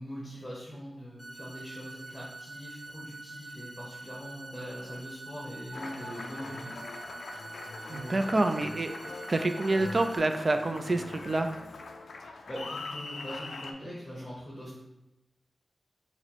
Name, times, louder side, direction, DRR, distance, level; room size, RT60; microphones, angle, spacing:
voice 1, 0.0-6.8 7.9-8.3 12.0-14.7, equal, 15° left, -6 dB, 1.0 m, -42 dB
sound 1, 1.2-10.2, right 3 dB, 15° right, 1.0 m, -46 dB
Applause, 5.7-13.7, left 3 dB, 90° left, 0.3 m, -42 dB
voice 2, 7.9-9.0 9.3-11.5, right 2 dB, 40° right, 7 dB, 0.3 m, -27 dB
4.4 x 2.1 x 4.1 m, 0.97 s
wide cardioid pair, 120°, 0 cm